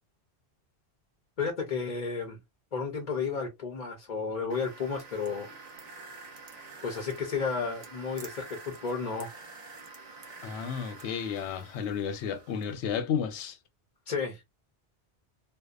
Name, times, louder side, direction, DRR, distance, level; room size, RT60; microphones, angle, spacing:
voice 1, 1.4-2.4 2.7-5.5 6.8-9.3 14.1-14.4, left 5 dB, 45° left, 0.6 m, -32 dB
sound 1, 4.5-12.7, right 3 dB, 45° right, 0.6 m, -48 dB
voice 2, 10.4-13.6, left 7 dB, 85° left, 0.9 m, -32 dB
2.6 x 2.1 x 2.2 m
omnidirectional pair, 1.1 m